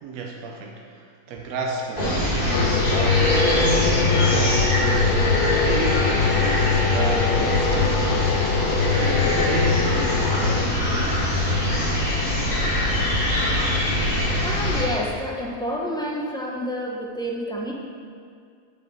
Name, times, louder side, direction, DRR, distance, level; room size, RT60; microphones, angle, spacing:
voice 1, 0.0-4.8 5.4-8.3 8.9-11.4, right 3 dB, 80° right, 0 dB, 1.1 m, -32 dB
sound 1, 1.7-1.8 2.4-2.5 3.3-3.4 4.1-4.2 5.0-5.1 5.8-5.9 6.7-6.8 7.7-7.8 8.7-8.8, left 1 dB, 15° right, 1.3 m, -41 dB
sound 2, 2.0-14.8, left 1 dB, 30° left, 1.8 m, -23 dB
sound 3, 2.5-10.6, left 5 dB, 65° left, 0.8 m, -23 dB
voice 2, 14.4-17.7, equal, 5° left, -3 dB, 0.4 m, -29 dB
7.3 x 6.9 x 4.1 m, 2.2 s
omnidirectional pair, 1.5 m